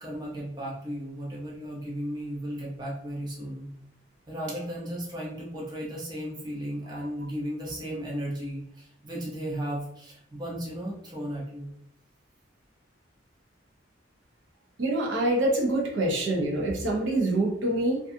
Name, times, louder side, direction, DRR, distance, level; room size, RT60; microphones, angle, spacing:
voice 1, 0.0-3.7 4.3-11.7, equal, 20° right, -4 dB, 0.6 m, -35 dB
voice 2, 14.8-18.0, right 1 dB, 75° right, -2 dB, 0.7 m, -25 dB
2.5 x 2.3 x 2.6 m, 0.72 s
head